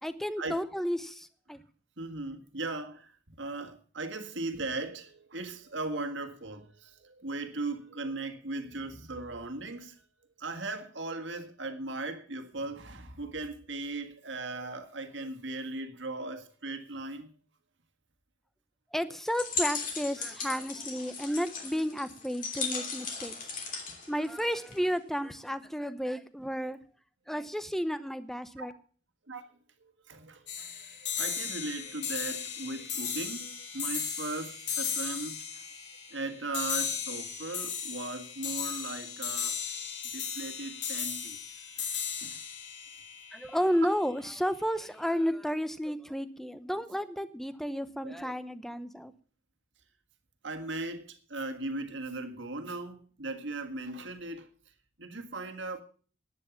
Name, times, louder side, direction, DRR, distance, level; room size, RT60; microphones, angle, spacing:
voice 1, 0.0-1.6 18.9-23.5 24.1-26.8 27.3-28.7 43.3-49.1, equal, ahead, 0.7 m, -32 dB
voice 2, 2.0-10.0 10.4-17.3 23.2-23.3 28.6-28.7 29.3-29.4 29.8-35.7 36.1-39.6 40.0-41.4 41.8-41.9 42.2-42.4 48.0-48.3 50.4-54.5 55.0-55.8, right 2 dB, 70° right, 1.7 m, -38 dB
sound 1, 19.3-24.9, left 5 dB, 45° left, 3.1 m, -37 dB
sound 2, 30.5-43.9, left 7 dB, 65° left, 2.8 m, -36 dB
11.0 x 9.6 x 7.1 m
head